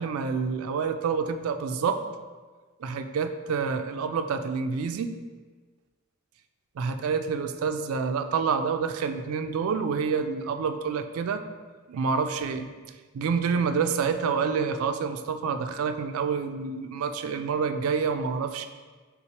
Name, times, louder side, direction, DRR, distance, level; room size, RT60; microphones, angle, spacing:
voice 1, 0.0-2.0 2.8-5.2 6.8-11.4 11.9-12.7 13.1-18.7, right 5 dB, 80° right, 8 dB, 0.3 m, -28 dB
4.4 x 3.7 x 2.8 m, 1.4 s
head